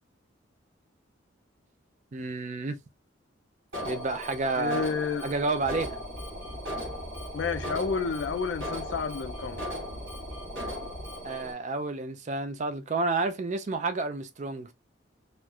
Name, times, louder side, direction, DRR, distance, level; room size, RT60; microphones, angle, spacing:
voice 1, 2.1-2.8 3.9-4.9 5.2-6.0 11.2-14.7, right 3 dB, 35° right, 0.3 m, -30 dB
Alarm, 3.7-11.5, equal, 75° right, 2.4 m, -38 dB
voice 2, 4.6-5.3 7.3-9.7, left 5 dB, 65° left, 0.4 m, -30 dB
sound 1, 5.6-11.4, equal, ahead, 0.7 m, -43 dB
4.2 x 2.4 x 2.3 m
head